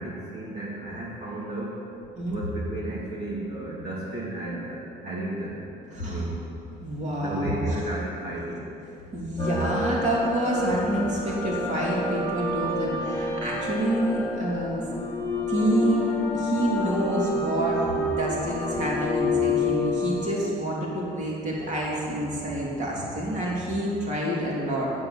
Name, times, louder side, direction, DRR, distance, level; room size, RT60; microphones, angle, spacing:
voice 1, 0.0-1.9 2.3-5.6 6.0-6.4 7.2-8.7, right 1 dB, 60° right, -7 dB, 2.5 m, -34 dB
voice 2, 5.9-6.3 6.8-7.8 9.1-14.9 15.5-24.9, right 1 dB, 45° right, -4 dB, 3.0 m, -28 dB
sound 1, 9.4-20.4, left 2 dB, 15° left, 2.5 m, -28 dB
8.0 x 8.0 x 7.8 m, 2.7 s
cardioid pair, 110°, 17 cm